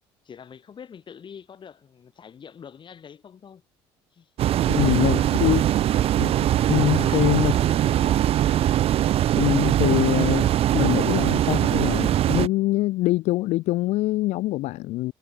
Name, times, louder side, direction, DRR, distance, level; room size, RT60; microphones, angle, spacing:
voice 1, 0.2-3.6 4.1-4.3 4.8-5.6 6.9-8.2, left 7 dB, 40° left, 3.8 m, -44 dB
sound 1, 4.4-12.5, right 12 dB, 55° right, 0.7 m, -21 dB
voice 2, 4.7-5.6 6.2-6.4 6.7-7.5 9.4-15.1, left 18 dB, 70° left, 1.1 m, -24 dB
supercardioid pair, 80°, 12 cm